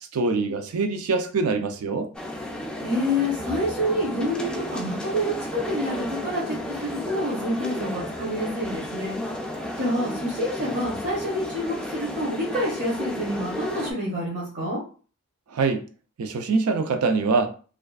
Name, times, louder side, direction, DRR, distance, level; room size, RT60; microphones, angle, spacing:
voice 1, 0.1-2.1 15.5-15.8 16.2-17.5, right 4 dB, 75° right, 0.4 m, -24 dB
sound 1, 2.1-13.9, left 1 dB, 5° left, 0.3 m, -33 dB
voice 2, 2.8-9.2 9.8-14.8, equal, 55° right, 0.7 m, -28 dB
2.4 x 2.3 x 2.3 m
head